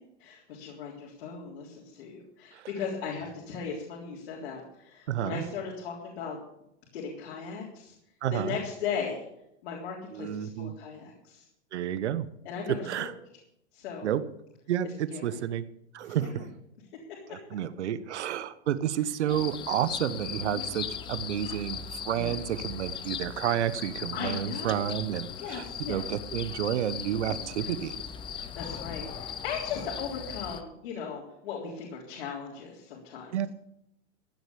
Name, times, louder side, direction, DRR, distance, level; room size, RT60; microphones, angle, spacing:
voice 1, 0.2-6.4 6.9-8.0 8.3-9.2 9.6-11.5 12.4-13.1 13.7-14.1 15.1-15.4 16.0-16.4 17.1-17.4 19.3-19.4 20.4-20.7 21.3-21.5 22.1-22.4 24.1-24.9 25.4-26.0 27.6-27.7 28.3-33.5, left 6 dB, 65° left, -3 dB, 3.7 m, -38 dB
voice 2, 5.1-5.4 8.2-8.6 10.1-10.7 11.7-12.3 12.7-13.1 14.0-14.2 14.7-15.7 15.9-16.5 17.3-28.0 33.3-33.5, right 10 dB, 80° right, 14 dB, 1.1 m, -30 dB
sound 1, 19.3-30.6, left 8 dB, 15° left, 0.7 m, -38 dB
15.0 x 8.3 x 6.9 m, 0.81 s
supercardioid pair, 150°, 34 cm